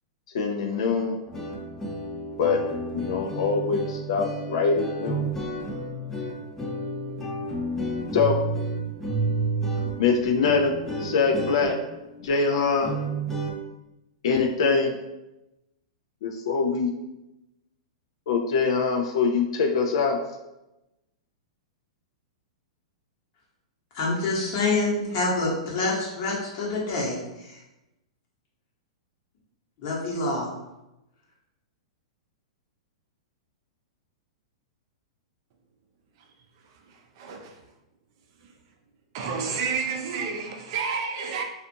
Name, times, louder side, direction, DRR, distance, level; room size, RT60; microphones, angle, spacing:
voice 1, 0.3-1.2 2.4-2.6 2.9-5.3 8.1-8.4 10.0-11.8 12.2-12.9 14.2-15.0 16.2-16.9 18.3-20.2, left 5 dB, 65° left, 0.3 m, -23 dB
sound 1, 1.3-13.5, right 2 dB, 10° left, 0.6 m, -31 dB
voice 2, 23.9-27.6 29.8-30.5, left 3 dB, 50° left, 1.0 m, -27 dB
voice 3, 36.6-37.6 38.4-38.5 39.1-41.4, right 5 dB, 55° right, 0.4 m, -31 dB
2.4 x 2.4 x 2.6 m
hypercardioid pair, 110°, 3 cm